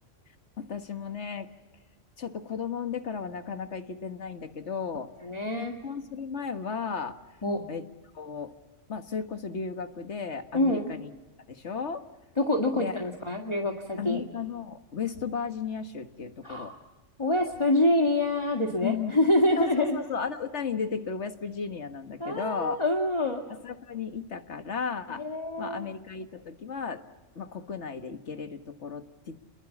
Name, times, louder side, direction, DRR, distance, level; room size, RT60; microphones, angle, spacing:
voice 1, 0.6-1.5 2.2-5.1 5.6-7.2 7.7-7.9 8.1-8.5 8.9-11.1 11.5-12.1 12.7-12.9 14.0-16.7 18.8-19.2 19.6-22.8 23.5-25.2 25.6-27.1 27.4-29.4, left 6 dB, 65° left, 8 dB, 1.8 m, -34 dB
voice 2, 5.2-5.7 7.4-7.6 10.5-10.8 12.4-14.2 16.4-16.8 17.2-20.0 22.2-23.4 25.2-25.8, left 1 dB, 25° left, 2 dB, 1.9 m, -26 dB
30.0 x 22.5 x 7.2 m, 1.1 s
omnidirectional pair, 1.3 m